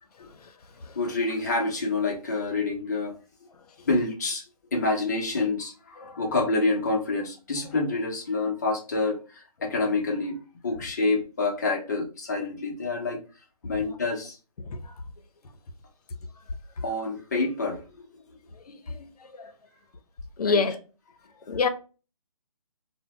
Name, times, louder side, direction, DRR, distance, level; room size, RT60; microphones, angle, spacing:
voice 1, 0.9-3.1 3.8-4.4 4.7-13.2 13.6-14.4 16.8-18.1 20.4-20.8, left 3 dB, 30° left, 0.6 m, -27 dB
voice 2, 18.7-19.5 20.4-20.8 21.5-21.7, left 4 dB, 80° left, 0.6 m, -27 dB
2.6 x 2.0 x 3.0 m
hypercardioid pair, 170°, 19 cm